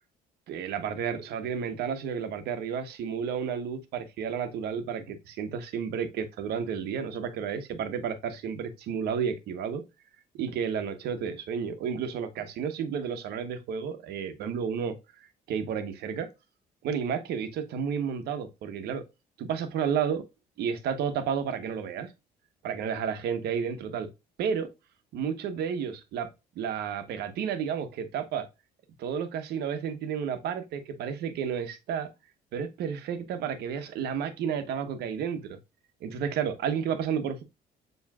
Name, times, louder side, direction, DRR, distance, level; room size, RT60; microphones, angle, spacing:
voice 1, 0.5-9.9 10.3-15.0 15.5-16.3 16.8-19.0 19.4-20.3 20.6-22.1 22.6-24.1 24.4-24.7 25.1-26.3 26.6-28.5 29.0-32.1 32.5-35.6 36.0-37.4, right 7 dB, 75° right, 1.0 m, -31 dB
7.3 x 3.1 x 2.3 m
cardioid pair, 110°, 17 cm